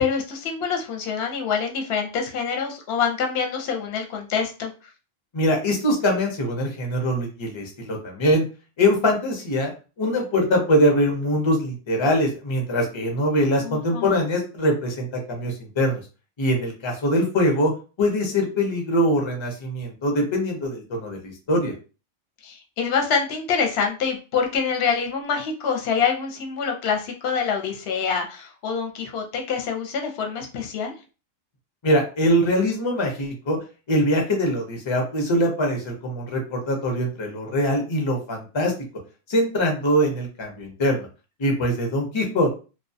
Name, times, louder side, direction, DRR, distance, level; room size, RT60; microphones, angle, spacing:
voice 1, 0.0-4.7 13.6-14.1 22.4-30.9, left 6 dB, 60° left, 3 dB, 0.8 m, -26 dB
voice 2, 5.3-8.4 8.8-9.7 10.0-16.0 16.4-17.7 18.0-21.7 31.8-33.6 33.9-38.7 39.3-41.1 41.4-42.6, equal, 35° left, 2 dB, 0.5 m, -23 dB
2.2 x 2.1 x 2.6 m, 0.33 s
omnidirectional pair, 1.3 m